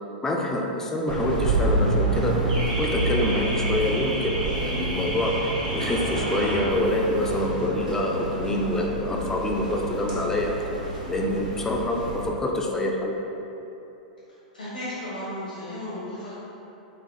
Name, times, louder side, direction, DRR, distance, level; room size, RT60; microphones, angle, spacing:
voice 1, 0.2-2.3 2.8-10.5 11.1-13.1, left 1 dB, 10° left, -1 dB, 0.4 m, -26 dB
Car / Alarm, 1.1-12.2, right 2 dB, 70° right, 0.8 m, -28 dB
voice 2, 14.3-16.5, left 1 dB, 85° left, -9 dB, 0.8 m, -35 dB
3.8 x 2.6 x 2.5 m, 3.0 s
figure-of-eight pair, 100°, 5 cm